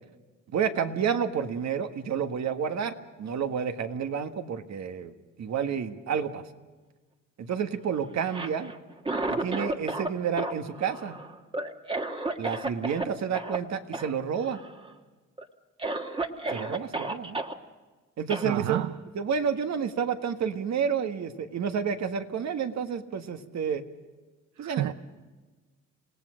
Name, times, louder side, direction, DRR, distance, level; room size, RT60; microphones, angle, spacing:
voice 1, 0.5-5.1 5.4-6.4 7.4-8.7 9.3-11.2 12.4-14.6 16.5-17.4 18.2-18.8 19.1-23.8 24.6-24.9, right 7 dB, 65° right, 1.7 m, -30 dB
Cough, 8.3-10.1 10.4-13.1 13.3-13.6 13.9-14.1 14.4-14.9 15.4-15.5 15.8-17.5 18.3-18.5, right 2 dB, 15° right, 1.6 m, -32 dB
voice 2, 18.4-18.9 24.6-24.9, right 12 dB, 80° right, 0.7 m, -29 dB
28.0 x 18.0 x 6.4 m
cardioid pair, 90°, 30 cm